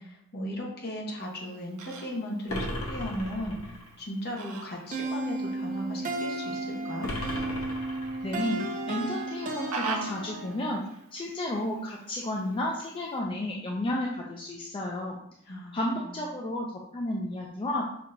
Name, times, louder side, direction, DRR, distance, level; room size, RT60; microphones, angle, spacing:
voice 1, 0.0-7.1 15.5-16.0, equal, 50° left, -2 dB, 1.0 m, -36 dB
Fowl, 1.2-13.2, right 4 dB, 80° right, 0.6 m, -44 dB
sound 1, 2.5-3.9 7.0-8.5, left 1 dB, 80° left, 0.8 m, -36 dB
sound 2, 4.9-10.7, right 2 dB, 40° right, 0.5 m, -34 dB
voice 2, 8.2-10.8 11.1-15.2 15.7-16.7 16.9-17.9, left 1 dB, 25° left, -2 dB, 0.4 m, -32 dB
5.9 x 2.8 x 2.6 m, 0.73 s
head